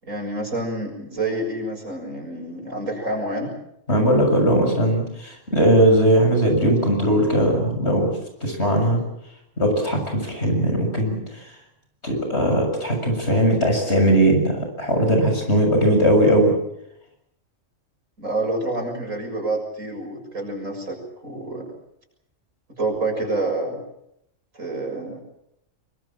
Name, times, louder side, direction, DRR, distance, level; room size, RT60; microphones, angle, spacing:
voice 1, 0.0-3.5 18.2-21.7 22.8-23.8 24.5-25.2, right 2 dB, 80° right, 2 dB, 7.4 m, -28 dB
voice 2, 3.9-9.0 9.6-11.5 12.0-16.5, right 1 dB, 55° left, 4 dB, 7.4 m, -19 dB
24.5 x 23.5 x 7.5 m, 0.79 s
omnidirectional pair, 1.3 m